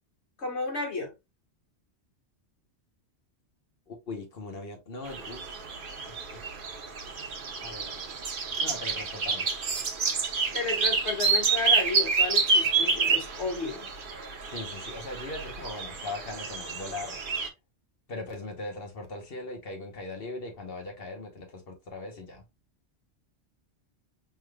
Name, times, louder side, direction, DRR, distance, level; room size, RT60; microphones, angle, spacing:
voice 1, 0.4-1.1 10.5-13.9, left 3 dB, 80° left, 1.9 m, -32 dB
voice 2, 3.9-5.6 6.1-6.4 7.6-8.0 8.6-9.5 14.5-17.2 18.1-22.4, left 2 dB, 60° left, 1.2 m, -40 dB
sound 1, 5.1-17.5, right 4 dB, 55° right, 0.9 m, -29 dB
5.4 x 3.3 x 2.2 m
omnidirectional pair, 1.1 m